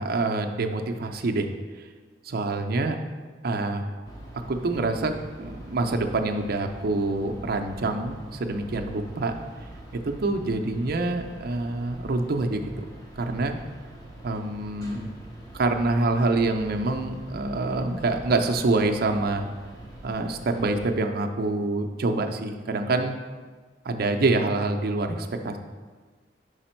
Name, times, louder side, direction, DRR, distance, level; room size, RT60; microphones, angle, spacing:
voice 1, 0.0-1.5 2.2-3.0 3.4-3.9 4.5-5.1 5.4-9.3 9.9-12.9 13.2-13.6 14.2-15.1 15.5-19.5 20.0-23.1 23.8-25.6, right 2 dB, 55° right, 4 dB, 0.5 m, -26 dB
sound 1, 4.0-20.9, right 1 dB, 20° left, 0.9 m, -44 dB
5.1 x 4.9 x 4.3 m, 1.4 s
head